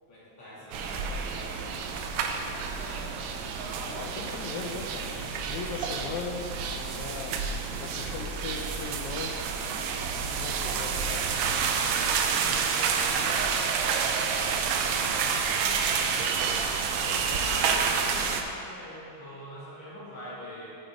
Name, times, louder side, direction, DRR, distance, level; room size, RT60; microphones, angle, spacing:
voice 1, 0.1-1.7 6.8-7.5 10.4-13.2 14.2-16.0 16.4-20.8, equal, 45° left, -10 dB, 3.4 m, -45 dB
sound 1, 0.7-18.4, right 6 dB, 80° right, 1.8 m, -29 dB
voice 2, 3.9-9.4 10.3-11.3 17.0-17.9, left 5 dB, 80° left, 4 dB, 2.0 m, -39 dB
8.5 x 7.9 x 4.9 m, 2.6 s
omnidirectional pair, 3.4 m